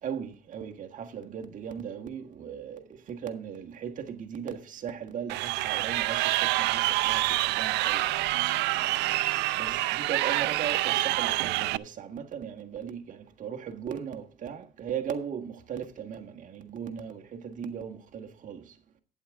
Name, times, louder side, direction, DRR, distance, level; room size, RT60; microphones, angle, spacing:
voice 1, 0.0-8.2 9.3-18.8, right 8 dB, 50° right, 1.5 m, -38 dB
Crowd, 5.3-11.8, right 18 dB, 85° right, 0.5 m, -27 dB
11.5 x 9.5 x 3.6 m
cardioid pair, 110°, 17 cm